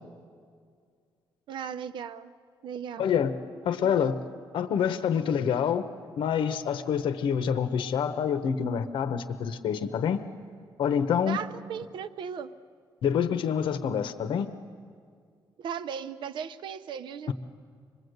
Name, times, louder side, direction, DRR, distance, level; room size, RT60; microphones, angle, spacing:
voice 1, 1.5-2.3 2.6-3.1 3.8-4.1 11.3-12.5 15.6-17.3, right 7 dB, 65° right, 12 dB, 0.7 m, -37 dB
voice 2, 3.0-3.3 3.6-4.2 4.5-5.9 6.2-10.2 10.8-11.4 13.0-14.5, left 7 dB, 70° left, 10 dB, 0.9 m, -27 dB
27.0 x 20.5 x 8.0 m, 2.1 s
cardioid pair, 165°, 9 cm